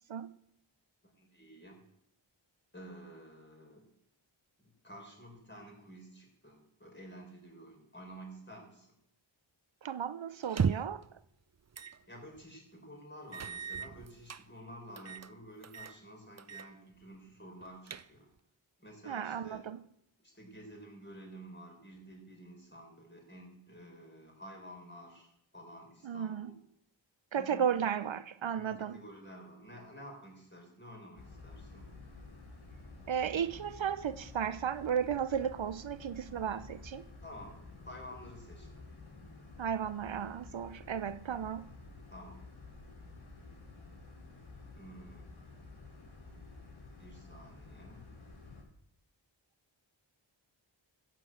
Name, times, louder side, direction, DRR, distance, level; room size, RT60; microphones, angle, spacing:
voice 1, 1.0-1.8 2.7-3.9 4.6-8.9 12.1-18.3 18.8-19.7 20.2-26.6 27.3-28.1 28.5-31.9 37.2-37.6 37.8-38.8 42.1-42.4 44.8-45.3 47.0-48.2, equal, 25° left, 5.5 m, -51 dB
voice 2, 9.8-11.0 19.1-19.8 26.0-26.5 27.3-29.0 33.1-37.0 39.6-41.7, right 8 dB, 70° right, 0.7 m, -34 dB
sound 1, 10.4-11.0 11.7-12.0 12.4-12.5 13.3-14.4 15.0-15.3 15.6-16.0 16.4-16.7 17.0-17.1 17.6-18.4, right 6 dB, 35° right, 0.5 m, -36 dB
sound 2, 31.2-48.6, left 3 dB, 80° left, 3.2 m, -51 dB
15.0 x 7.8 x 7.8 m
wide cardioid pair, 60°, 47 cm